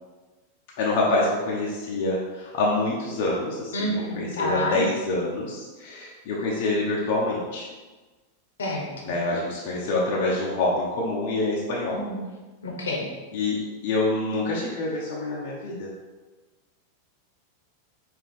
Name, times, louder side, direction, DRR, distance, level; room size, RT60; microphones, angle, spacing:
voice 1, 0.8-7.7 9.0-12.0 13.3-15.9, left 2 dB, 50° left, -5 dB, 0.7 m, -26 dB
voice 2, 3.7-4.8 8.6-9.1 11.9-12.2 12.6-13.1, left 1 dB, 65° left, -1 dB, 0.9 m, -28 dB
5.1 x 2.7 x 3.7 m, 1.3 s
figure-of-eight pair, 90°, 0 cm